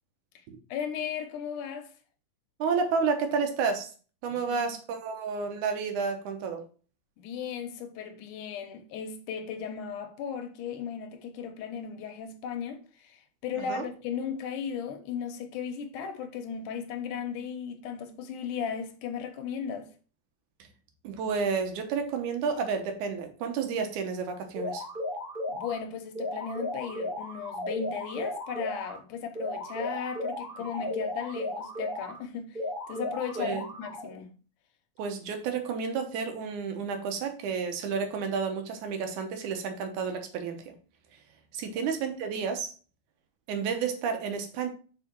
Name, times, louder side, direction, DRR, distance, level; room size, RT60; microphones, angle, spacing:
voice 1, 0.7-1.9 4.3-4.7 7.2-19.9 25.5-34.3, left 7 dB, 85° left, 2.5 m, -36 dB
voice 2, 2.6-3.9 4.2-6.6 13.6-13.9 21.0-24.8 33.4-33.6 35.0-40.7 41.5-42.7 43.5-44.7, right 5 dB, 80° right, 2.5 m, -31 dB
sound 1, 24.6-25.8 26.2-29.0 29.4-32.2 32.6-34.1, left 1 dB, ahead, 2.3 m, -35 dB
5.8 x 4.9 x 4.5 m
omnidirectional pair, 3.5 m